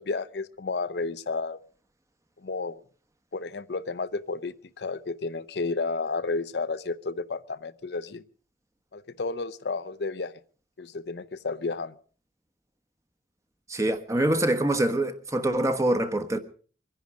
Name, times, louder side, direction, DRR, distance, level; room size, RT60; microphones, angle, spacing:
voice 1, 0.0-1.6 2.4-2.8 3.3-8.2 8.9-10.4 10.8-11.9, left 3 dB, 70° left, 0.6 m, -32 dB
voice 2, 13.7-16.4, right 1 dB, 20° right, 1.2 m, -25 dB
24.0 x 10.5 x 5.0 m
head